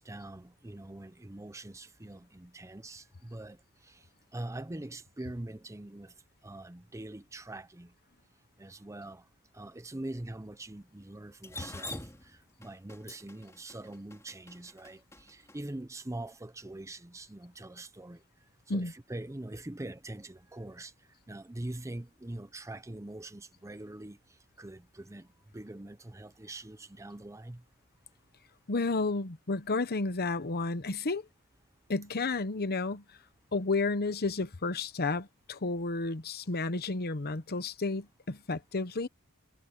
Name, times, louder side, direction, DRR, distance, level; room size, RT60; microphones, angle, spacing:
voice 1, 0.0-3.6 3.8-4.0 4.3-6.1 6.4-7.9 8.6-9.2 9.5-18.2 18.7-20.9 21.3-24.2 24.6-25.3 25.5-27.6, right 1 dB, 15° right, 0.7 m, -43 dB
Drip, 11.4-15.6, left 1 dB, 15° left, 3.3 m, -44 dB
voice 2, 28.7-31.2 31.9-33.0 33.5-39.1, left 3 dB, 45° left, 1.0 m, -31 dB
head